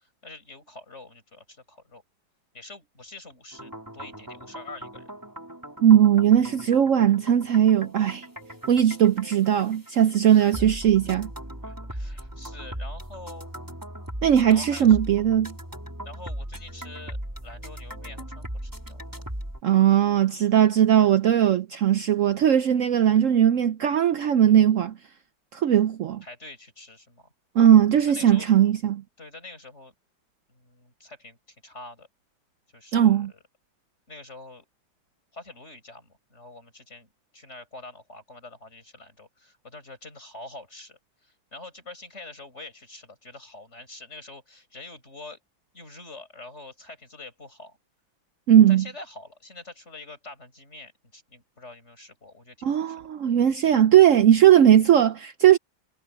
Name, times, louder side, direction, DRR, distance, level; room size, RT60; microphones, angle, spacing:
voice 1, 0.0-2.0 2.5-5.1 10.3-10.6 11.6-13.5 14.5-15.0 16.1-17.2 17.4-19.2 26.2-27.3 28.1-28.5 29.2-29.9 30.5-31.4 31.6-32.1 32.7-33.4 34.1-34.7 35.3-45.4 45.7-47.8 48.7-53.0, left 2 dB, 35° left, 7.1 m, -45 dB
sound 1, 3.5-19.6, equal, 10° right, 3.4 m, -39 dB
voice 2, 5.8-8.2 8.7-11.3 14.2-15.5 19.6-24.9 25.5-26.2 27.6-29.0 32.9-33.3 48.5-48.8 52.6-55.6, right 10 dB, 85° right, 0.6 m, -19 dB
omnidirectional pair, 2.1 m